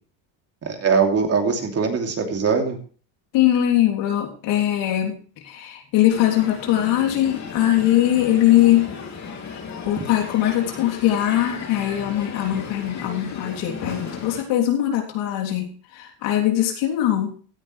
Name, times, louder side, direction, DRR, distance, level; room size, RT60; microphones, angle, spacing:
voice 1, 0.6-2.8, right 5 dB, 30° right, 3 dB, 2.9 m, -21 dB
voice 2, 3.3-8.9 9.9-17.3, left 13 dB, 70° left, 1 dB, 3.4 m, -21 dB
Crowd, 6.1-14.4, left 6 dB, 35° left, 3.2 m, -35 dB
16.0 x 10.0 x 3.3 m, 0.41 s
cardioid pair, 120°, 46 cm